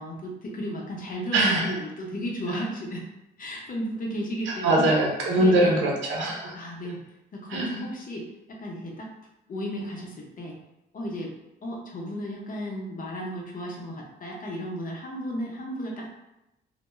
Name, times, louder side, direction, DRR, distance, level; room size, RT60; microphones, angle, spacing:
voice 1, 0.0-3.1 3.4-4.9 5.4-5.8 6.5-7.0 7.3-9.1 9.5-10.6 10.9-11.3 11.6-16.1, equal, 45° left, -1 dB, 0.7 m, -34 dB
voice 2, 1.3-1.8 4.5-6.6 7.5-7.7, right 1 dB, 80° right, -1 dB, 0.6 m, -22 dB
2.2 x 2.1 x 3.0 m, 0.91 s
cardioid pair, 90°, 20 cm